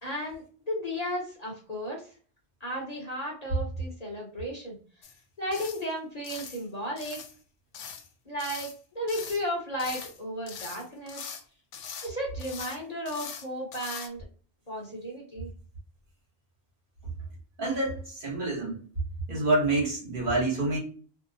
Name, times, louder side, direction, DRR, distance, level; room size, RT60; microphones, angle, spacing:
voice 1, 0.0-2.1 2.6-4.8 5.4-7.2 8.3-11.2 12.0-14.2 14.7-15.5, equal, 35° left, -2 dB, 0.8 m, -34 dB
sound 1, 5.0-5.2 5.5-5.9 6.2-6.6 7.0-7.4 7.7-8.1 8.4-8.8 9.1-9.4 9.8-10.2 10.5-11.4 11.7-12.1 12.4-12.8 13.1-13.5 13.7-14.1, left 7 dB, 85° left, 0.9 m, -41 dB
voice 2, 17.6-18.8 19.3-20.8, right 2 dB, 50° right, -2 dB, 1.1 m, -27 dB
2.7 x 2.0 x 2.6 m, 0.41 s
omnidirectional pair, 1.2 m